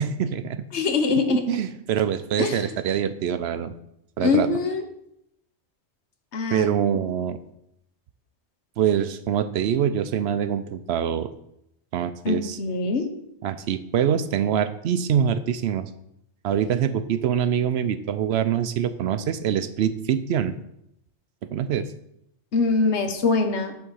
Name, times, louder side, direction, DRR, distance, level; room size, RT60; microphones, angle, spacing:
voice 1, 0.0-0.6 1.1-3.7 4.2-4.5 6.5-7.4 8.8-11.3 11.9-12.6 13.4-15.9 16.4-20.6 21.5-21.9, right 9 dB, 75° right, 11 dB, 0.8 m, -24 dB
voice 2, 0.7-1.4 2.4-2.6 4.2-4.8 6.3-6.9 12.2-13.0 22.5-23.7, left 4 dB, 80° left, 6 dB, 1.2 m, -23 dB
8.3 x 3.8 x 6.3 m, 0.78 s
omnidirectional pair, 1.1 m